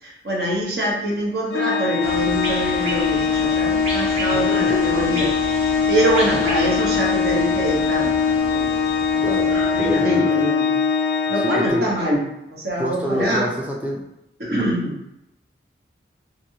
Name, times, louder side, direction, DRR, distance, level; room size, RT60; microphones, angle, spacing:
voice 1, 0.0-5.3 5.9-8.8 9.5-10.7 11.3-12.2 12.5-13.5 14.4-15.0, equal, 60° right, -3 dB, 1.0 m, -24 dB
Organ, 1.5-12.3, left 6 dB, 80° left, 0.3 m, -22 dB
sound 1, 2.0-10.0, right 1 dB, 35° right, 0.7 m, -32 dB
voice 2, 4.3-4.8 6.3-6.4 9.2-10.4 11.4-11.9 12.8-14.0, equal, 10° right, -2 dB, 0.4 m, -28 dB
3.0 x 2.6 x 2.7 m, 0.86 s
head